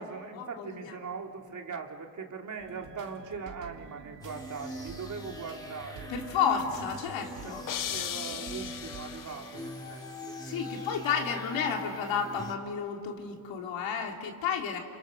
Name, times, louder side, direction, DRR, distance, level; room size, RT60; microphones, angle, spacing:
voice 1, 0.0-6.1 7.4-10.9, right 5 dB, 40° right, 2 dB, 2.9 m, -41 dB
voice 2, 0.6-0.9 6.1-7.6 10.4-14.8, left 7 dB, 85° left, 2 dB, 3.4 m, -31 dB
sound 1, 2.6-9.1, right 7 dB, 70° right, 2.8 m, -49 dB
sound 2, 4.2-12.5, left 1 dB, 10° left, 4.1 m, -42 dB
sound 3, 7.7-9.8, left 10 dB, 45° left, 0.8 m, -37 dB
29.5 x 29.5 x 6.5 m, 2.3 s
cardioid pair, 105°, 44 cm